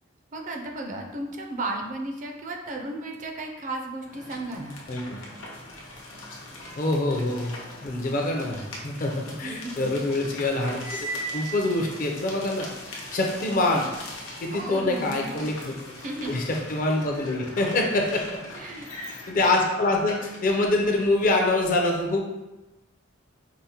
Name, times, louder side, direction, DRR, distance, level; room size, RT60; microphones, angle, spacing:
voice 1, 0.3-4.8 9.4-9.9 14.5-15.5 16.0-16.3 18.5-19.1, right 2 dB, 40° right, 2 dB, 0.4 m, -34 dB
sound 1, 4.0-21.3, left 2 dB, 80° left, 0.8 m, -42 dB
voice 2, 6.8-7.5 7.8-11.0 11.3-13.9 14.4-15.7 16.3-18.3 19.3-22.2, left 2 dB, 40° left, 1 dB, 0.5 m, -25 dB
Cymbal, 10.8-12.2, right 3 dB, 90° right, 1.0 m, -35 dB
4.8 x 2.1 x 2.8 m, 1.0 s
head